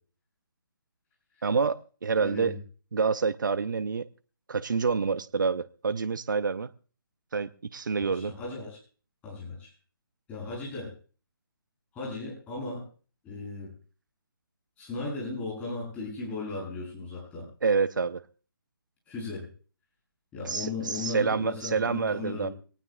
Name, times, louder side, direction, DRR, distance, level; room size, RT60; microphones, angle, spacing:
voice 1, 1.4-2.5 2.9-4.1 4.5-6.7 7.3-8.3 17.6-18.2 20.4-22.5, right 5 dB, 60° right, 0.7 m, -27 dB
voice 2, 2.2-2.6 8.1-8.8 9.2-9.7 10.3-10.9 11.9-12.8 13.2-13.7 14.8-17.4 19.1-19.5 20.3-22.5, left 3 dB, 10° left, 7.7 m, -36 dB
23.5 x 19.0 x 2.3 m
figure-of-eight pair, 145°, 12 cm